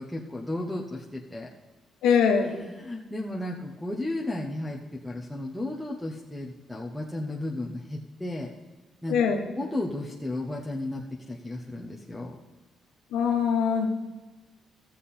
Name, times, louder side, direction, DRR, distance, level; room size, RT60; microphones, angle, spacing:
voice 1, 0.0-1.5 2.8-8.5 9.0-9.2 9.6-12.4, left 1 dB, 5° left, -3 dB, 1.1 m, -34 dB
voice 2, 2.0-2.6 9.1-9.5 13.1-13.9, left 6 dB, 90° left, 4 dB, 1.2 m, -23 dB
13.5 x 7.6 x 4.3 m, 1.2 s
cardioid pair, 90°, 0 cm